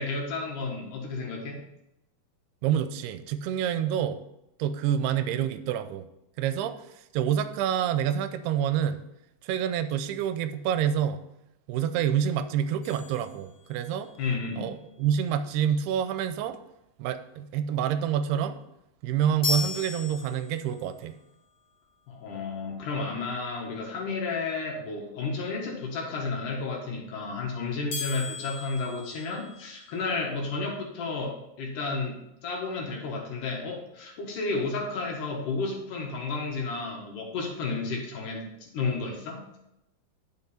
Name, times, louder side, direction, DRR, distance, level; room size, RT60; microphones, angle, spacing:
voice 1, 0.0-1.6 14.2-14.7 22.1-39.6, left 3 dB, 60° left, -1 dB, 2.7 m, -32 dB
voice 2, 2.6-4.2 4.6-6.1 6.4-6.8 7.1-9.1 9.4-11.2 11.7-14.1 14.6-16.6 17.0-18.6 19.0-21.1, right 9 dB, 85° right, 10 dB, 2.6 m, -27 dB
sound 1, 12.8-14.1 19.4-20.9 27.9-30.0, left 4 dB, 45° left, 2.4 m, -36 dB
10.5 x 5.9 x 4.3 m, 0.86 s
omnidirectional pair, 4.5 m